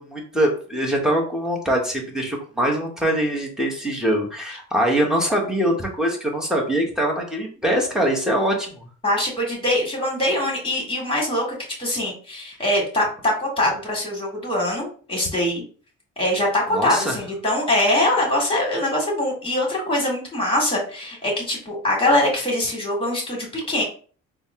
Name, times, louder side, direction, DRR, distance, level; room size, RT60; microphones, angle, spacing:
voice 1, 0.0-8.9 16.7-17.1, right 1 dB, ahead, -1 dB, 1.2 m, -23 dB
voice 2, 9.0-15.6 16.2-23.8, left 1 dB, 20° left, -1 dB, 1.9 m, -23 dB
4.0 x 2.2 x 3.6 m, 0.42 s
cardioid pair, 90°, 30 cm